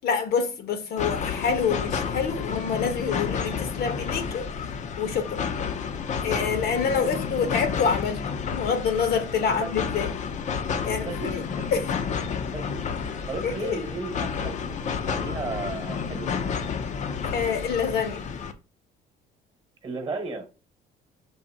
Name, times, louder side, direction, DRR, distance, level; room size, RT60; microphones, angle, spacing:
voice 1, 0.0-4.5 5.0-5.4 6.2-10.1 10.8-11.4 11.7-11.9 13.4-13.9 17.3-18.2, left 6 dB, 65° left, 0.9 m, -27 dB
sound 1, 1.0-18.5, left 6 dB, 45° left, 0.5 m, -31 dB
voice 2, 9.3-9.7 11.0-11.8 12.5-16.6 19.8-20.5, right 3 dB, 30° right, 1.1 m, -35 dB
6.5 x 2.7 x 2.7 m
cardioid pair, 110°, 17 cm